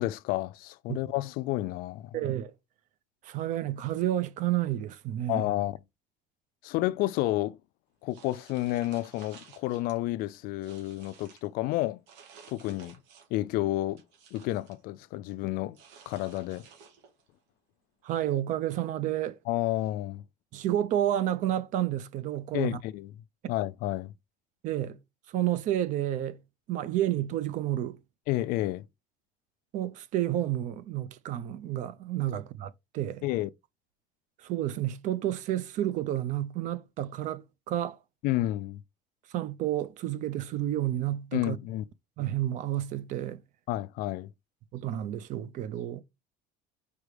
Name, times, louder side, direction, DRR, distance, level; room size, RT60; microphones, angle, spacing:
voice 1, 0.0-2.1 5.3-5.8 6.6-7.6 8.0-12.0 12.5-12.9 13.3-14.0 14.3-15.8 16.1-16.6 19.5-20.2 22.5-23.1 23.5-24.1 28.3-28.8 33.2-33.5 38.2-38.8 41.3-41.8 43.7-44.3, left 16 dB, 55° left, 0.4 m, -30 dB
voice 2, 2.1-2.5 3.2-5.5 18.0-19.4 20.5-22.8 24.6-25.0 25.3-26.4 26.7-28.0 29.7-33.2 34.4-38.0 39.3-41.6 42.2-43.4 44.7-46.0, right 12 dB, 45° right, 0.6 m, -30 dB
sound 1, 8.1-10.0 10.3-11.5 12.1-13.4 13.8-14.8 15.7-17.3, right 6 dB, 80° right, 2.3 m, -54 dB
4.8 x 4.8 x 5.0 m
cardioid pair, 175°, 18 cm